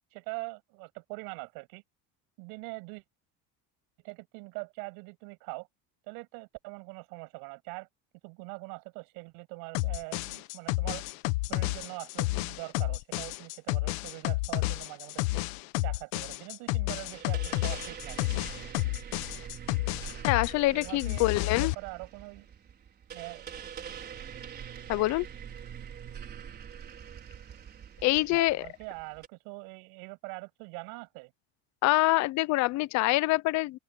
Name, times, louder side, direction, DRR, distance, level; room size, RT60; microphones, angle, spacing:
voice 1, 0.1-1.8 2.4-3.0 4.0-5.7 6.1-7.9 8.2-11.1 11.5-15.4 15.8-18.2 20.7-22.5 23.1-23.5 28.3-31.3, right 31 dB, 90° right, 8.0 m, -43 dB
sound 1, 9.7-20.5 20.8-21.7, left 21 dB, 85° left, 1.2 m, -31 dB
sound 2, 17.1-29.3, right 8 dB, 30° right, 5.3 m, -44 dB
voice 2, 20.2-21.7 24.9-25.3 28.0-28.7 31.8-33.8, left 19 dB, 55° left, 0.7 m, -25 dB
open air
cardioid pair, 175°, 35 cm